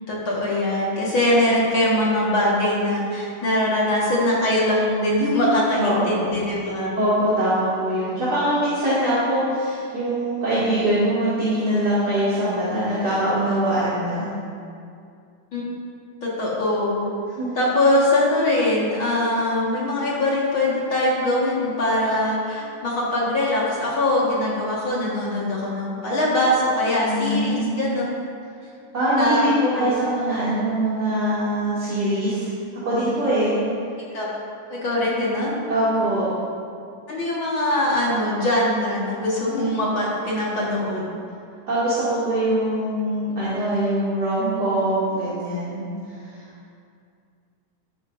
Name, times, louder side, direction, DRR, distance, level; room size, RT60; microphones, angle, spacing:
voice 1, 0.0-6.9 15.5-15.6 16.2-17.1 17.6-28.0 29.2-29.5 29.8-30.0 34.1-34.3 34.7-35.6 37.1-41.1, left 1 dB, 45° left, -6 dB, 2.1 m, -22 dB
voice 2, 5.8-6.3 7.0-14.3 17.4-17.5 27.1-27.8 28.9-32.5 32.8-33.5 35.7-36.3 41.7-45.9, right 1 dB, 30° right, -11 dB, 2.6 m, -22 dB
12.5 x 12.5 x 2.7 m, 2.4 s
omnidirectional pair, 3.8 m